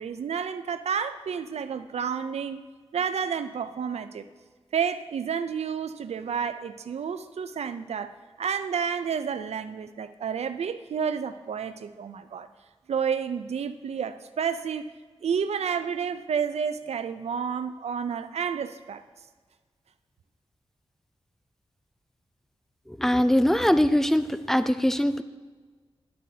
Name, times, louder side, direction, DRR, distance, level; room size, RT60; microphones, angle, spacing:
voice 1, 0.0-2.6 2.9-4.3 4.7-8.1 8.4-12.5 12.9-14.9 15.2-19.0, right 7 dB, 90° right, 11 dB, 0.4 m, -30 dB
voice 2, 22.9-25.2, equal, 5° left, 12 dB, 0.4 m, -22 dB
11.5 x 8.4 x 2.8 m, 1.4 s
wide cardioid pair, 85°, 11 cm